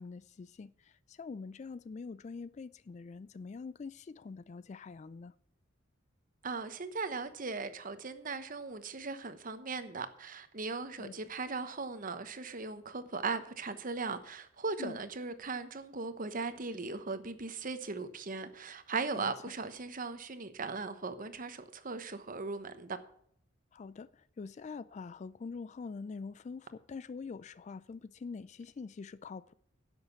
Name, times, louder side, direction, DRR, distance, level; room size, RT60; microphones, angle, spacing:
voice 1, 0.0-5.3 11.0-11.1 14.8-15.0 19.1-19.3 23.7-29.5, left 4 dB, 35° left, 0.3 m, -44 dB
voice 2, 6.4-23.0, right 4 dB, 45° right, 1.0 m, -38 dB
10.5 x 6.6 x 7.1 m
head